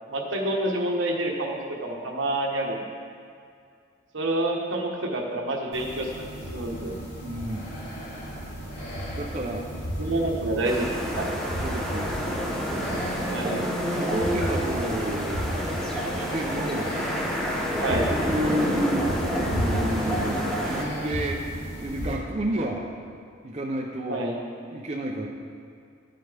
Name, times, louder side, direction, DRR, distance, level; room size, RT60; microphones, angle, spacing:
voice 1, 0.1-2.8 4.1-6.2 6.5-6.9 10.0-10.9 11.1-11.3 13.3-13.6 17.8-18.1 24.1-24.3, right 1 dB, 70° right, 0 dB, 1.3 m, -28 dB
sound 1, 5.7-22.1, equal, 50° left, 2.6 m, -34 dB
voice 2, 7.2-7.8 9.1-9.7 11.6-12.5 13.3-13.6 13.9-15.7 16.1-17.0 17.7-21.4 21.8-22.8 23.4-24.2 24.7-25.3, right 1 dB, 35° right, -1 dB, 0.6 m, -31 dB
sound 2, 10.6-20.8, equal, 5° left, 1.0 m, -29 dB
13.0 x 7.6 x 3.5 m, 2.3 s
head